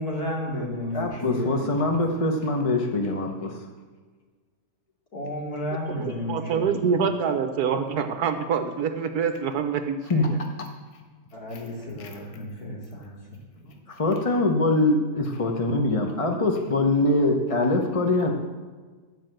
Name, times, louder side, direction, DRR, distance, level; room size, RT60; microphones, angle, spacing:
voice 1, 0.0-1.6 5.1-6.7 11.3-13.1 13.6-13.8, left 1 dB, 60° left, -3 dB, 3.0 m, -32 dB
voice 2, 0.9-3.6 10.1-10.3 13.9-18.3, left 2 dB, 30° left, 3 dB, 0.6 m, -23 dB
voice 3, 6.0-10.4, right 6 dB, 70° right, 7 dB, 1.3 m, -26 dB
12.0 x 5.3 x 7.7 m, 1.4 s
omnidirectional pair, 1.8 m